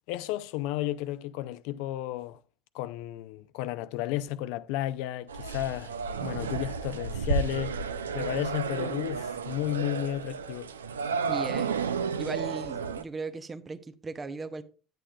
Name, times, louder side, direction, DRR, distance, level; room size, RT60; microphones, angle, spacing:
voice 1, 0.1-2.4 2.7-7.7 8.1-10.7, left 14 dB, 70° left, 0.5 m, -33 dB
sound 1, 5.3-13.0, right 5 dB, 85° right, 0.4 m, -32 dB
voice 2, 11.3-11.8 12.2-14.6, right 4 dB, 30° right, 0.8 m, -37 dB
9.9 x 9.1 x 2.4 m
hypercardioid pair, 65°, 0 cm